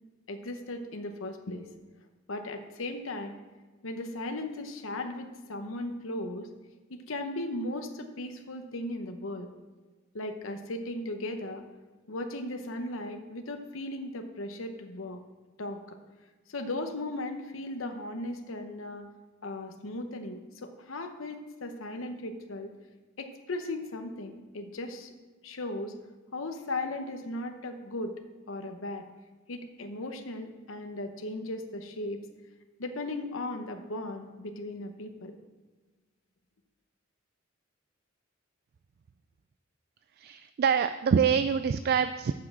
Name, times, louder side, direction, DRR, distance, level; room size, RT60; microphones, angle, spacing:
voice 1, 0.3-1.7 2.3-3.3 3.8-6.5 6.9-9.5 10.1-11.6 12.1-15.2 15.6-16.0 16.5-19.0 19.4-22.7 23.2-25.1 25.4-26.0 26.3-28.2 28.5-29.1 29.5-32.3 32.8-35.4, left 2 dB, 75° left, 6 dB, 0.9 m, -37 dB
voice 2, 40.2-42.3, right 7 dB, 50° right, 11 dB, 0.3 m, -25 dB
7.5 x 6.2 x 7.4 m, 1.3 s
head